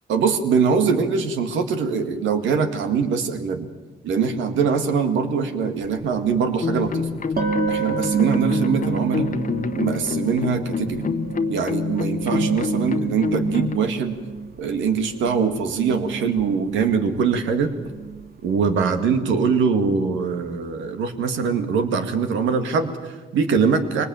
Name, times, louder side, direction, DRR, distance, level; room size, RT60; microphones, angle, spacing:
voice 1, 0.1-3.7 4.0-7.2 7.7-9.3 9.8-11.1 11.5-14.2 14.6-17.7 18.4-24.0, right 5 dB, 85° right, 7 dB, 2.1 m, -22 dB
sound 1, 5.8-5.9 7.4-14.8 15.0-18.8, right 5 dB, 50° right, 2.7 m, -29 dB
sound 2, 6.6-13.8, left 5 dB, 45° left, 1.2 m, -27 dB
24.0 x 19.5 x 9.1 m, 1.3 s
supercardioid pair, 60°, 19 cm